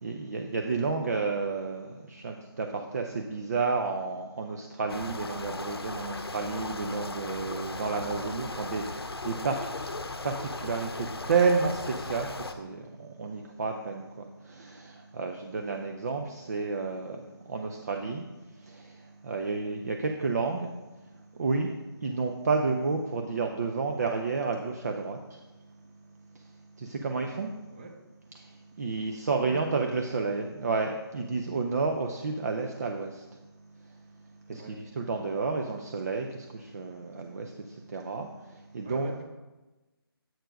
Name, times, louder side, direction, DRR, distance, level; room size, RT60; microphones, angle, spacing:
voice 1, 0.0-10.0 10.2-20.7 21.3-21.7 22.0-25.4 26.3-26.5 26.8-27.5 28.4-33.4 33.8-33.9 34.5-39.1, right 4 dB, 40° right, 3 dB, 0.6 m, -31 dB
sound 1, 4.9-12.5, left 3 dB, 75° left, 0.7 m, -37 dB
voice 2, 29.3-29.6 34.5-34.8 38.7-39.2, right 2 dB, 25° right, 2 dB, 1.0 m, -43 dB
7.8 x 4.4 x 5.2 m, 1.1 s
figure-of-eight pair, 155°, 13 cm